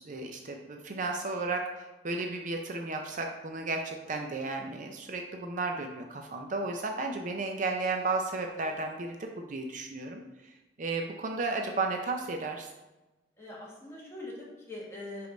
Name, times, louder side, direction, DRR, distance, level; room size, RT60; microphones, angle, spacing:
voice 1, 0.0-10.5 10.8-12.7, right 3 dB, 45° right, 3 dB, 0.5 m, -34 dB
voice 2, 13.4-15.3, left 2 dB, 15° left, -5 dB, 1.6 m, -42 dB
5.1 x 4.5 x 5.2 m, 1.1 s
head